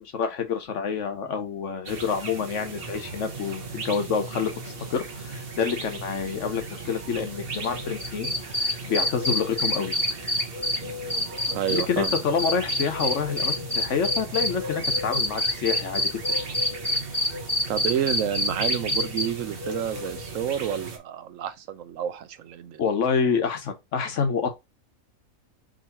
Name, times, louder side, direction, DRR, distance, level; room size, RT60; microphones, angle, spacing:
voice 1, 0.0-8.3 8.6-9.9 11.7-16.0 22.8-24.5, left 6 dB, 60° left, 1.1 m, -27 dB
sound 1, 1.9-21.0, right 1 dB, 45° right, 1.1 m, -36 dB
sound 2, 8.0-10.8 11.1-14.5 14.8-19.2, left 1 dB, 15° left, 1.3 m, -25 dB
voice 2, 11.5-12.1 17.7-22.8, right 10 dB, 70° right, 0.9 m, -29 dB
3.8 x 3.0 x 4.1 m
omnidirectional pair, 1.5 m